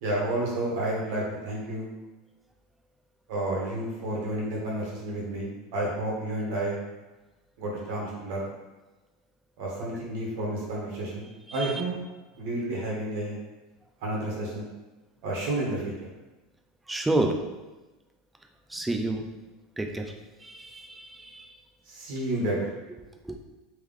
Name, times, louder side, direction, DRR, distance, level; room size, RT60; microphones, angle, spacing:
voice 1, 0.0-1.9 3.3-6.8 7.6-8.5 9.6-11.9 12.4-13.4 14.0-14.6 15.2-15.9 21.8-22.7, right 1 dB, 60° right, -4 dB, 1.5 m, -30 dB
voice 2, 16.9-17.4 18.7-19.2 19.8-20.1 20.4-21.5 23.2-23.4, right 2 dB, 5° right, 3 dB, 0.4 m, -29 dB
3.4 x 3.2 x 3.5 m, 1.1 s
supercardioid pair, 160°, 0 cm